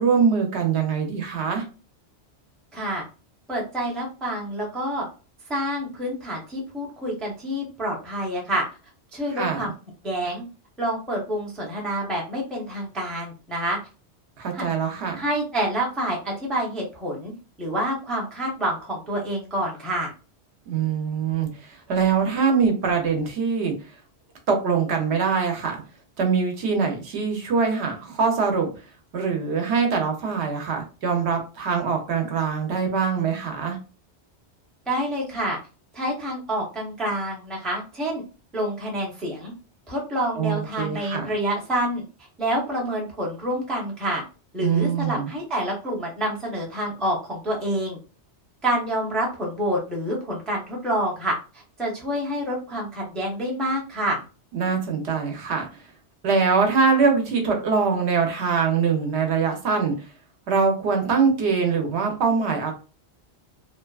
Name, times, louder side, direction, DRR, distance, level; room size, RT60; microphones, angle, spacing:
voice 1, 0.0-1.7 9.3-9.7 14.4-15.2 20.7-23.7 24.5-25.8 26.2-28.7 29.1-33.8 40.3-41.3 44.6-45.3 54.5-55.7 56.2-60.1 60.5-62.7, right 5 dB, 75° right, 0.9 m, -23 dB
voice 2, 2.7-3.0 3.5-5.1 5.5-8.6 9.1-9.7 10.0-10.4 10.8-13.8 14.5-14.6 15.2-17.3 17.6-20.1 34.9-35.6 35.9-38.2 38.5-39.5 39.9-42.0 42.4-44.2 44.5-48.0 48.6-54.2, right 1 dB, ahead, 0.5 m, -27 dB
2.7 x 2.3 x 2.3 m
omnidirectional pair, 1.2 m